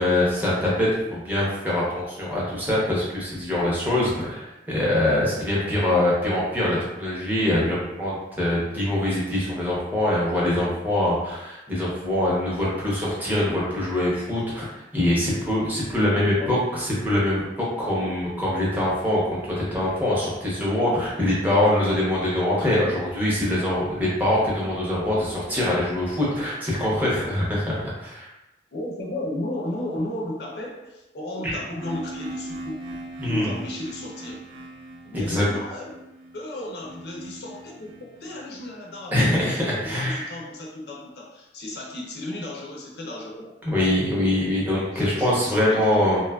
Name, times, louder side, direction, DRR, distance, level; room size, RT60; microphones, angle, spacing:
voice 1, 0.0-28.3 31.4-31.5 33.2-33.5 35.1-35.4 39.1-40.3 43.6-46.2, left 1 dB, 10° right, -6 dB, 0.7 m, -24 dB
voice 2, 15.9-16.6 18.0-18.1 28.7-32.8 33.3-34.4 35.0-36.0 36.3-43.5 44.9-46.1, left 1 dB, 65° left, -2 dB, 0.5 m, -34 dB
sound 1, 31.8-39.6, right 1 dB, 85° right, 0.4 m, -40 dB
2.6 x 2.3 x 2.2 m, 0.93 s
head